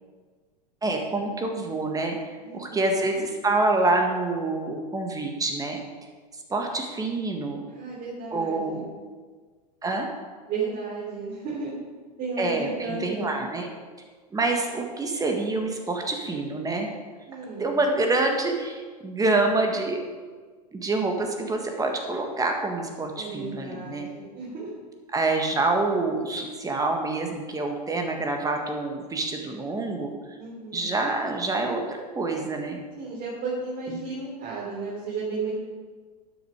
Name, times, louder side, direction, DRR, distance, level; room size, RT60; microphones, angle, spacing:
voice 1, 0.8-5.8 6.5-7.6 8.3-8.9 9.8-10.1 12.4-13.7 14.3-16.9 17.6-20.0 20.7-24.1 25.1-30.1 30.7-32.8 33.9-34.0, right 2 dB, 15° right, 3 dB, 1.6 m, -27 dB
voice 2, 2.4-2.9 7.7-8.9 10.5-11.8 12.2-13.4 17.3-17.7 23.2-24.7 30.4-30.9 33.0-35.5, right 4 dB, 45° right, -6 dB, 3.5 m, -33 dB
12.0 x 6.9 x 5.1 m, 1.5 s
hypercardioid pair, 95°, 21 cm